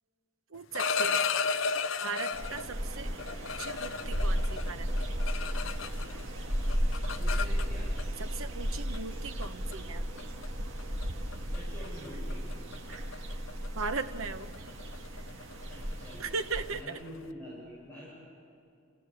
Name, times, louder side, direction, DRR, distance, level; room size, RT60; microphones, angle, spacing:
sound 1, 0.5-2.7 3.2-6.2 6.5-8.0 8.9-9.1 9.4-9.7 10.2-10.5 10.8-11.0 11.3-11.6 11.8-17.2, left 5 dB, 70° left, 0.6 m, -34 dB
voice 1, 0.5-1.3 2.0-3.1 3.6-4.9 8.2-10.1 13.8-14.7 16.2-17.0, right 4 dB, 85° right, 8 dB, 1.1 m, -38 dB
sound 2, 2.3-16.8, equal, 65° right, 1.9 m, -34 dB
voice 2, 7.0-8.0 11.5-12.5 15.7-16.3 16.7-18.1, equal, 10° left, -8 dB, 7.1 m, -46 dB
29.0 x 16.0 x 8.7 m, 2.5 s
head